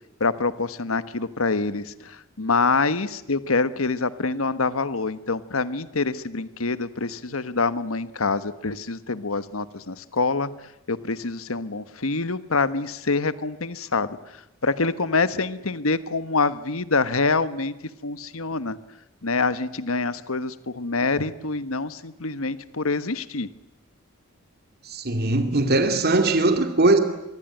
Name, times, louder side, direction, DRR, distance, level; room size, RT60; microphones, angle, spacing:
voice 1, 0.2-10.5 10.9-17.7 18.0-18.8 19.2-23.5, left 3 dB, 80° left, 1.3 m, -26 dB
voice 2, 24.8-27.0, right 2 dB, 50° right, 2.5 m, -20 dB
24.5 x 23.5 x 9.2 m
head